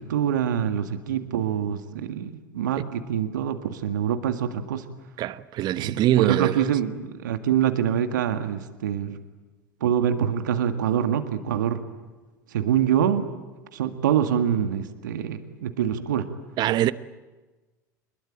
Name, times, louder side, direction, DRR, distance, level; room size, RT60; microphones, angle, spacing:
voice 1, 0.0-4.8 5.8-9.2 9.8-11.8 12.5-13.3 13.7-16.3, right 9 dB, 70° right, 1.9 m, -25 dB
voice 2, 5.2-6.6 16.6-16.9, right 13 dB, 45° right, 1.0 m, -23 dB
25.5 x 21.5 x 9.1 m
figure-of-eight pair, 80°, 10 cm